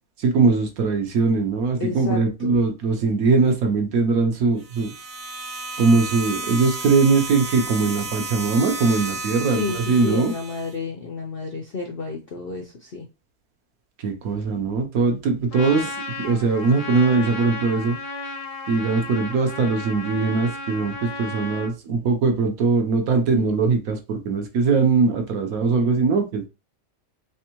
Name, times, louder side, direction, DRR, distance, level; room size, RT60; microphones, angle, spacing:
voice 1, 0.2-4.9 5.8-10.3 14.0-16.0 16.2-18.0 18.7-26.4, right 4 dB, 65° right, 4 dB, 1.1 m, -21 dB
voice 2, 1.8-2.6 9.4-13.1, left 3 dB, 60° left, 1 dB, 0.6 m, -31 dB
sound 1, 4.6-10.7, right 2 dB, 45° right, 1.2 m, -33 dB
Trumpet, 15.5-21.7, left 2 dB, 75° left, 1.1 m, -34 dB
3.5 x 3.2 x 2.9 m, 0.28 s
omnidirectional pair, 1.8 m